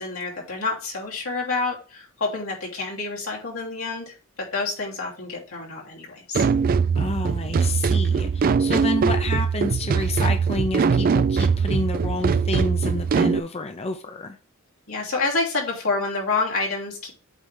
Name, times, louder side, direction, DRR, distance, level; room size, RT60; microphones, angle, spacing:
voice 1, 0.0-6.4 14.9-17.1, left 3 dB, 85° left, 2.9 m, -28 dB
sound 1, 6.3-13.4, right 5 dB, 45° right, 0.3 m, -21 dB
voice 2, 7.0-14.4, left 3 dB, 30° left, 0.6 m, -29 dB
8.2 x 3.4 x 5.4 m
head